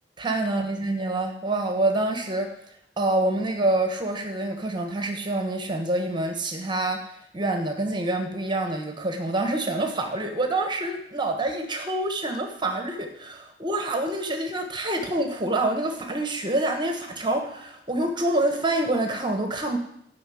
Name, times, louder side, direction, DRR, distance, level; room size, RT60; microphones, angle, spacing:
voice 1, 0.2-2.5 3.0-19.8, right 2 dB, 25° right, 4 dB, 1.3 m, -26 dB
14.0 x 5.7 x 8.5 m, 0.75 s
head